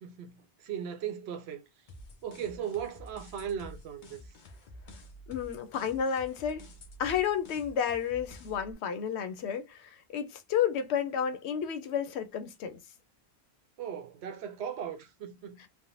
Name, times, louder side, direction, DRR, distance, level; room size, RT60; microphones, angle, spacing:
voice 1, 0.0-1.7 2.2-4.2 13.8-15.7, right 8 dB, 80° right, 0.8 m, -38 dB
sound 1, 1.9-8.7, equal, 55° left, 0.7 m, -50 dB
voice 2, 5.3-6.6 7.0-12.8 15.6-15.7, left 8 dB, 90° left, 0.9 m, -31 dB
3.3 x 2.1 x 2.6 m
omnidirectional pair, 1.1 m